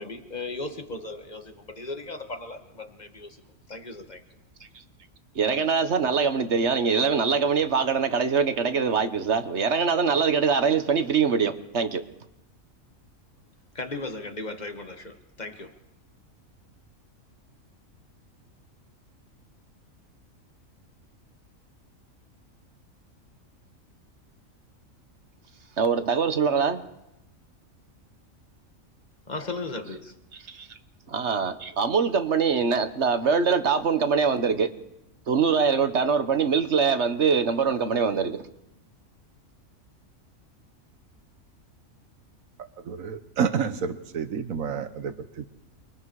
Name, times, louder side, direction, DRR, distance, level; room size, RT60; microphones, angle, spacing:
voice 1, 0.0-3.4 3.7-4.2 13.7-15.8 29.3-30.1, left 2 dB, 30° left, 2.0 m, -36 dB
voice 2, 5.3-12.0 25.8-26.8 30.5-30.7 31.1-34.7 35.3-38.4, right 5 dB, 55° right, 1.5 m, -23 dB
voice 3, 42.8-45.5, right 6 dB, 75° right, 1.6 m, -29 dB
29.0 x 22.5 x 4.9 m
omnidirectional pair, 1.4 m